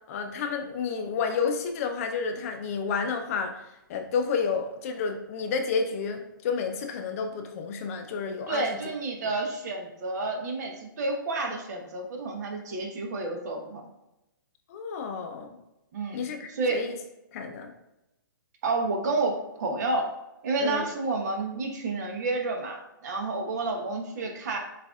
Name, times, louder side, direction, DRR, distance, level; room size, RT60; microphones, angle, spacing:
voice 1, 0.1-3.6 3.9-8.7 14.7-15.6 16.1-16.9 17.3-17.7 20.6-20.9, left 5 dB, 45° left, 4 dB, 0.6 m, -30 dB
voice 2, 8.5-13.8 15.9-16.8 18.6-20.1 20.4-24.6, right 3 dB, 50° right, 3 dB, 1.0 m, -30 dB
7.6 x 2.6 x 2.4 m, 0.92 s
hypercardioid pair, 135°, 11 cm